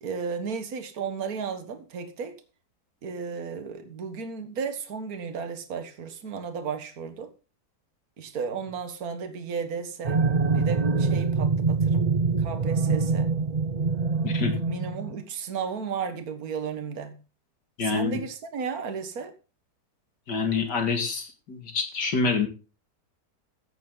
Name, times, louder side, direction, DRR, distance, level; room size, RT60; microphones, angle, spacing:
voice 1, 0.0-2.3 3.0-7.3 8.2-10.2 10.5-12.1 12.4-13.3 14.7-17.2 17.8-19.3, right 6 dB, 60° right, 1.9 m, -34 dB
sound 1, 10.0-15.2, right 4 dB, 45° right, 0.5 m, -24 dB
voice 2, 17.8-18.2 20.3-22.5, left 4 dB, 90° left, 2.8 m, -26 dB
15.0 x 9.4 x 3.9 m
omnidirectional pair, 1.8 m